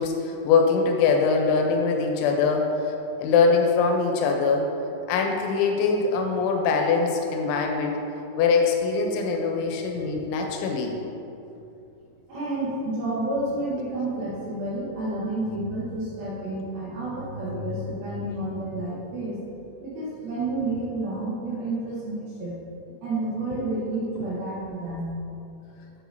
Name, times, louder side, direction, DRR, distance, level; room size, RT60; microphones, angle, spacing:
voice 1, 0.0-4.7 5.1-8.0 8.4-10.9, left 5 dB, 80° left, 2 dB, 3.1 m, -23 dB
voice 2, 12.3-19.4 19.8-22.6 23.0-25.1, right 2 dB, 70° right, -7 dB, 2.5 m, -30 dB
9.3 x 8.6 x 2.7 m, 2.7 s
omnidirectional pair, 5.5 m